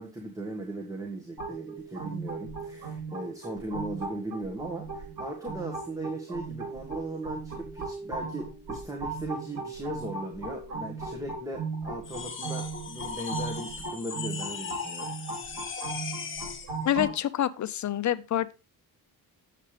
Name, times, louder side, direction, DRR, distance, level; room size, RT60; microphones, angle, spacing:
voice 1, 0.0-15.1, right 2 dB, 10° right, 1.5 m, -38 dB
sound 1, 1.4-17.1, right 3 dB, 70° right, 3.4 m, -37 dB
sound 2, 12.0-16.8, left 5 dB, 30° left, 1.2 m, -38 dB
voice 2, 16.8-18.5, left 11 dB, 50° left, 0.6 m, -27 dB
8.3 x 7.5 x 3.3 m
cardioid pair, 110°, 38 cm